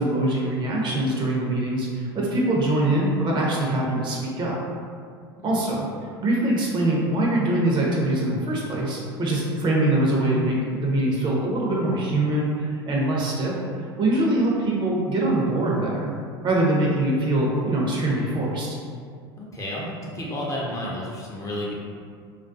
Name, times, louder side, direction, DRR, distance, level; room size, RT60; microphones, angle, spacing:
voice 1, 0.0-4.6 5.4-5.9 6.2-13.6 14.0-16.1 16.4-18.7, right 1 dB, 35° right, -4 dB, 0.6 m, -23 dB
voice 2, 19.4-21.7, left 1 dB, 25° left, -4 dB, 0.5 m, -31 dB
2.3 x 2.2 x 2.5 m, 2.2 s
hypercardioid pair, 85°, 13 cm